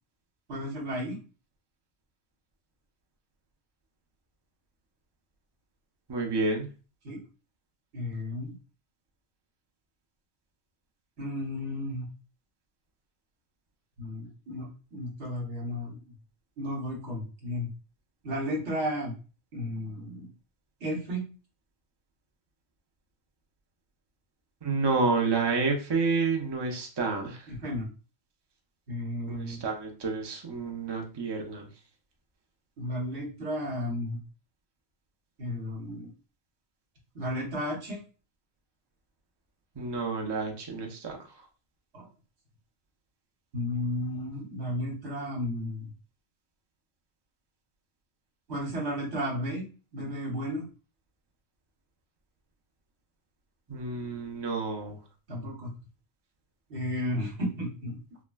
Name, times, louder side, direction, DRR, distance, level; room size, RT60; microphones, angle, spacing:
voice 1, 0.5-1.2 7.0-7.2 7.9-8.5 11.2-12.1 14.0-16.0 16.6-17.7 18.2-19.1 19.5-20.3 20.8-21.2 27.5-27.9 28.9-29.6 32.8-34.2 35.4-36.1 37.1-38.0 41.9-42.1 43.5-45.9 48.5-49.7 49.9-50.6 55.3-55.7 56.7-58.0, equal, 65° right, -2 dB, 1.3 m, -33 dB
voice 2, 6.1-6.7 24.6-27.4 29.3-31.7 39.8-41.2 53.7-55.0, right 4 dB, 30° right, 2 dB, 0.5 m, -29 dB
3.5 x 2.2 x 2.2 m, 0.35 s
omnidirectional pair, 1.2 m